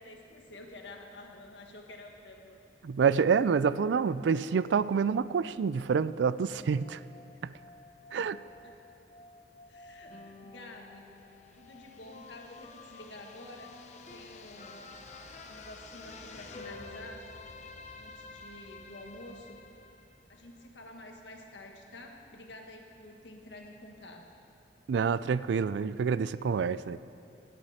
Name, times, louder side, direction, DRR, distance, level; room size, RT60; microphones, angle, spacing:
voice 1, 0.0-2.6 8.6-8.9 9.7-11.1 11.5-14.8 15.5-17.3 18.0-19.6 20.3-24.3, left 1 dB, 80° left, 2 dB, 1.6 m, -49 dB
voice 2, 2.8-7.0 7.4-7.5 8.1-8.4 24.9-27.0, right 6 dB, 75° right, 16 dB, 0.3 m, -27 dB
sound 1, 3.6-20.7, left 3 dB, 40° left, 0.8 m, -51 dB
17.5 x 12.0 x 4.3 m, 2.6 s
head